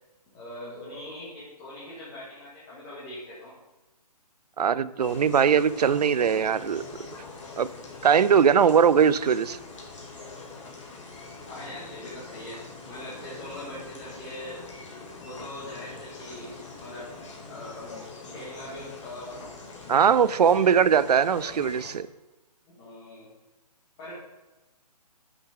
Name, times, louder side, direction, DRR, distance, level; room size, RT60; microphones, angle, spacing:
voice 1, 0.3-3.5 11.5-14.6 15.2-17.1 17.5-17.9 18.3-19.4 19.8-20.8 22.7-23.3 24.0-24.1, left 1 dB, 15° left, -8 dB, 1.8 m, -41 dB
voice 2, 4.6-6.8 7.6-7.7 8.0-9.6 19.9-22.1, right 7 dB, 80° right, 17 dB, 0.5 m, -20 dB
sound 1, 5.0-21.9, left 3 dB, 50° left, 2.5 m, -43 dB
9.5 x 6.2 x 3.7 m, 1.1 s
hypercardioid pair, 165°, 20 cm